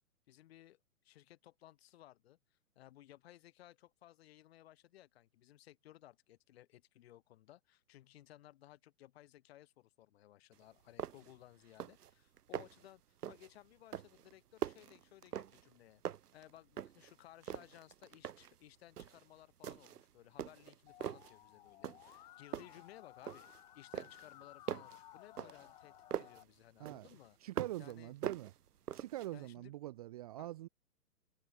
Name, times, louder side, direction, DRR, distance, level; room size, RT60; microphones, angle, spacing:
voice 1, 0.3-13.0 13.3-16.0 16.3-23.5 23.7-27.4 27.8-28.1 29.3-29.7 30.4-30.5, left 14 dB, 40° left, 5.0 m, -59 dB
sound 1, 10.5-10.6 11.0-11.4 11.7-12.1 12.4-12.9 13.2-13.5 13.9-15.8 16.0-17.1 17.4-18.6 19.0-19.2 19.6-20.0 20.4-21.3 21.8-22.2 22.5-23.6 23.9-26.4 26.8-27.9 28.2-29.3, right 10 dB, 75° right, 0.6 m, -43 dB
Musical instrument, 20.9-26.4, left 15 dB, 10° left, 0.9 m, -58 dB
voice 2, 27.4-28.5 28.9-30.7, right 15 dB, 25° right, 0.8 m, -44 dB
figure-of-eight pair, 125°, 46 cm